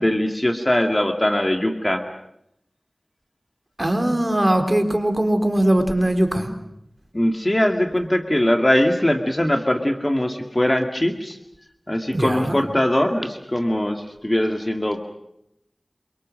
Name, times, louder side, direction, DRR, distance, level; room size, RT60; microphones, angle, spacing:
voice 1, 0.0-2.0 7.1-11.4 11.9-15.1, left 1 dB, 25° left, 5 dB, 2.1 m, -21 dB
voice 2, 3.8-6.5 12.1-12.6, right 1 dB, 25° right, 5 dB, 3.8 m, -20 dB
28.0 x 24.0 x 6.4 m, 0.79 s
wide cardioid pair, 45°, 0 cm